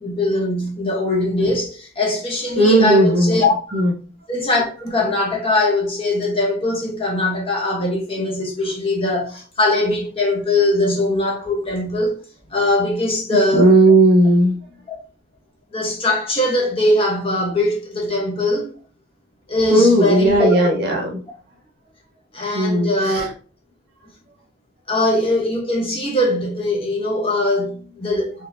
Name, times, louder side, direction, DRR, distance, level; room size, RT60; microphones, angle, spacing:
voice 1, 0.0-3.5 4.3-12.1 12.5-13.7 14.9-15.0 15.7-18.7 19.5-20.7 22.3-23.3 24.9-28.3, left 1 dB, 30° left, 1.0 m, -21 dB
voice 2, 2.6-3.4 3.7-3.9 13.3-14.6 19.7-21.2 22.5-23.3, right 1 dB, 55° right, 1.1 m, -15 dB
4.1 x 3.4 x 2.7 m
head